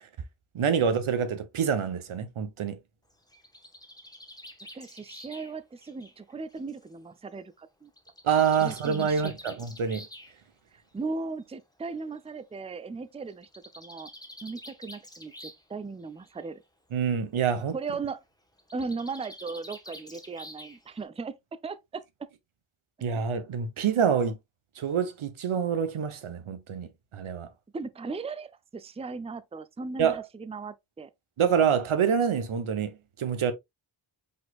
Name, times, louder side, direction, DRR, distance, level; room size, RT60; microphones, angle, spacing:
voice 1, 0.5-2.8 8.2-10.1 16.9-17.7 23.0-24.4 24.8-27.5 30.0-30.2 31.4-33.5, right 7 dB, 85° right, 1.0 m, -26 dB
Bird, 3.1-6.9 8.0-10.3 11.4-11.5 11.8-11.9 12.2-12.3 13.3-15.7 16.0-16.5 18.6-21.0, left 1 dB, 10° left, 1.1 m, -48 dB
voice 2, 4.7-7.9 8.6-9.6 10.9-13.5 13.8-14.1 14.4-16.6 17.7-18.2 18.7-21.4 21.6-22.3 27.7-31.1, right 4 dB, 15° right, 0.5 m, -37 dB
5.3 x 4.2 x 2.4 m
cardioid pair, 60°, 48 cm